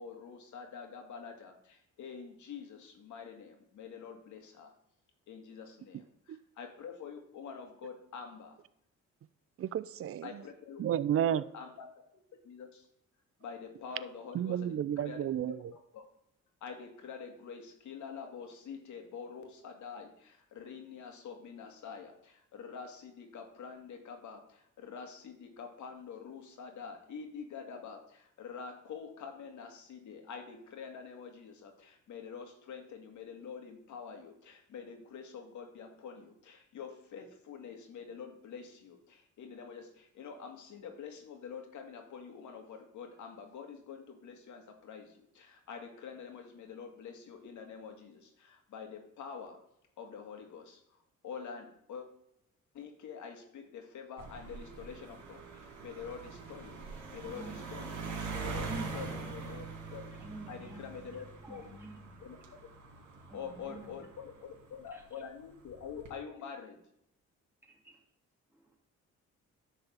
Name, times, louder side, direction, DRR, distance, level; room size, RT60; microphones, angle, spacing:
voice 1, 0.0-4.7 5.3-8.6 10.2-10.8 11.3-12.0 12.4-12.8 13.4-16.0 16.6-49.6 50.0-52.1 52.7-59.7 59.9-60.1 60.5-61.7 62.2-62.4 63.3-66.8, left 6 dB, 75° left, 2.1 m, -46 dB
voice 2, 9.6-10.4 10.8-11.4 14.3-15.6, right 10 dB, 50° right, 0.5 m, -31 dB
sound 1, 54.2-64.9 65.7-66.1, right 4 dB, 65° right, 3.0 m, -43 dB
voice 3, 57.2-57.7 58.4-59.0 60.2-62.2 63.3-63.9 64.9-65.0 67.7-68.0 68.5-68.8, right 1 dB, 5° right, 1.9 m, -49 dB
10.5 x 4.2 x 7.0 m
cardioid pair, 90°, 30 cm